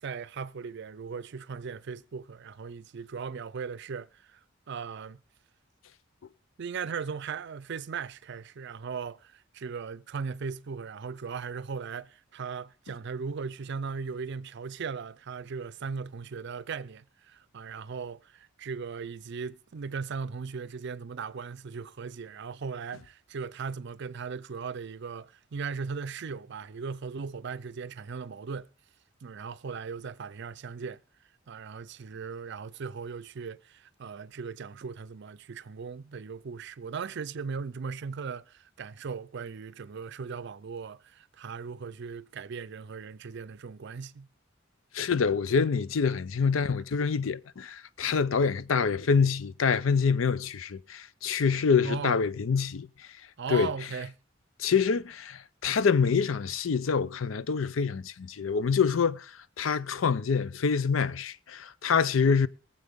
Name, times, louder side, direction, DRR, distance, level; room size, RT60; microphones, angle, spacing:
voice 1, 0.0-4.4 4.7-5.2 6.6-28.7 29.2-31.0 31.5-44.3 51.8-52.2 53.4-54.1, right 5 dB, 60° right, 0.5 m, -38 dB
voice 2, 44.9-53.1 53.5-53.7 54.6-62.5, left 5 dB, 80° left, 0.5 m, -26 dB
22.0 x 7.6 x 3.5 m
head